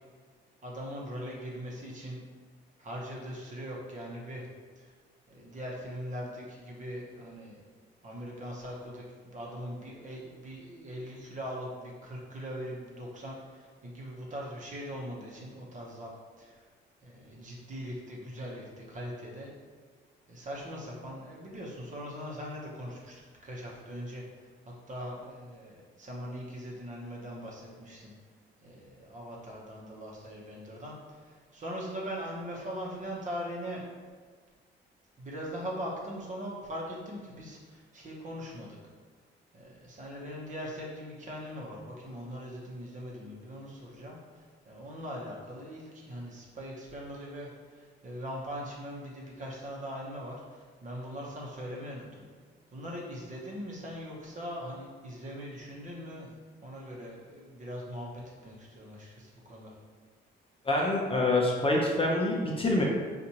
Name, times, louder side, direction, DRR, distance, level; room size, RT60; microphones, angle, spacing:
voice 1, 0.6-2.2 2.8-4.4 4.8-4.9 5.3-7.6 8.0-16.1 16.4-16.7 17.0-19.5 20.3-28.1 28.6-33.8 35.2-38.8 39.5-52.2 52.7-56.4 56.6-59.7, equal, 40° right, -3 dB, 0.9 m, -41 dB
voice 2, 60.7-62.8, left 2 dB, 30° left, -2 dB, 0.6 m, -26 dB
4.2 x 2.5 x 2.9 m, 1.5 s
cardioid pair, 90°, 20 cm